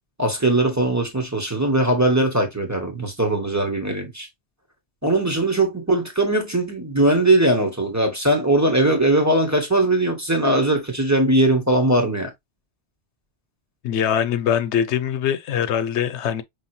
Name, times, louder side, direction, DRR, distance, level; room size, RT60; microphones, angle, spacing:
voice 1, 0.2-4.3 5.0-12.3, right 1 dB, 15° right, 1.4 m, -20 dB
voice 2, 13.8-16.4, left 9 dB, 85° left, 0.9 m, -22 dB
5.6 x 3.3 x 2.7 m
omnidirectional pair, 1.1 m